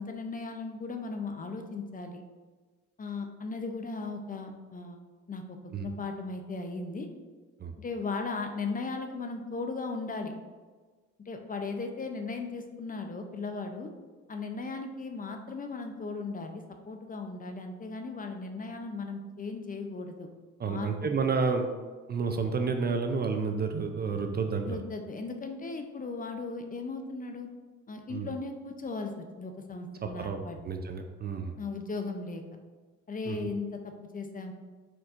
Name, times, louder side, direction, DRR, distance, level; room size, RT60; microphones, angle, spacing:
voice 1, 0.0-2.2 3.0-5.0 5.3-7.1 7.8-10.3 11.3-13.9 14.3-20.3 20.6-20.9 24.7-27.5 27.9-30.6 31.6-32.4 33.1-34.5, left 3 dB, 30° left, 5 dB, 0.5 m, -37 dB
voice 2, 20.6-21.7 22.1-24.7 28.1-28.3 30.0-30.4 30.6-31.5 33.3-33.5, right 5 dB, 35° right, 5 dB, 0.4 m, -30 dB
4.5 x 4.0 x 2.5 m, 1.4 s
cardioid pair, 90°, 30 cm